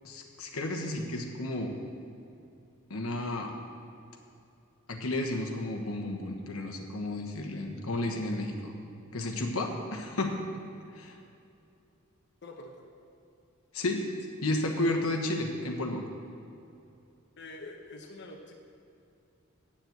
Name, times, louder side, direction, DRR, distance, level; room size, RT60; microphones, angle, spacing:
voice 1, 0.0-1.8 2.9-3.5 4.9-8.7 9.1-10.4 10.9-11.2 13.7-14.0 14.4-16.0, left 1 dB, 85° left, 2 dB, 1.2 m, -32 dB
voice 2, 12.4-12.8 17.4-18.5, left 2 dB, 55° left, 1 dB, 1.0 m, -45 dB
8.8 x 7.4 x 7.9 m, 2.7 s
head